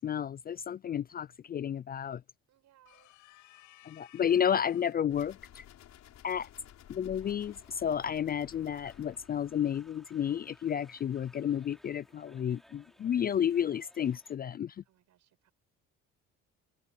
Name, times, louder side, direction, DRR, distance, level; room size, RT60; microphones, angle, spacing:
voice 1, 0.0-2.2 3.8-5.6 6.2-6.5 6.9-14.8, left 9 dB, 30° left, 0.4 m, -31 dB
voice 2, 2.5-3.1 14.8-15.5, right 12 dB, 65° right, 7.5 m, -66 dB
sound 1, 2.8-5.1, left 18 dB, 85° left, 7.5 m, -58 dB
sound 2, 5.1-10.1, left 11 dB, 60° left, 6.3 m, -55 dB
sound 3, 7.2-14.4, equal, ahead, 4.3 m, -63 dB
open air
cardioid pair, 105°, 31 cm